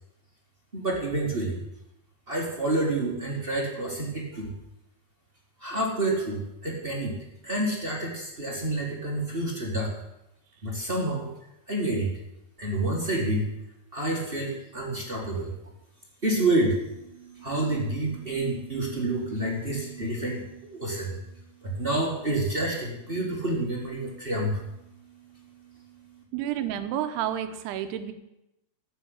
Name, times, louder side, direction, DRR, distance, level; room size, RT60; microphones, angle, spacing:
voice 1, 0.7-1.6 2.3-4.5 5.6-7.1 7.4-9.9 10.6-11.3 11.7-12.1 12.6-13.4 13.9-15.5 16.2-21.2 21.6-24.6 25.3-25.8 26.1-26.2, right 2 dB, 30° right, -2 dB, 0.9 m, -28 dB
voice 2, 26.3-28.1, right 11 dB, 80° right, 9 dB, 2.9 m, -30 dB
14.5 x 6.5 x 8.7 m, 0.88 s
omnidirectional pair, 4.7 m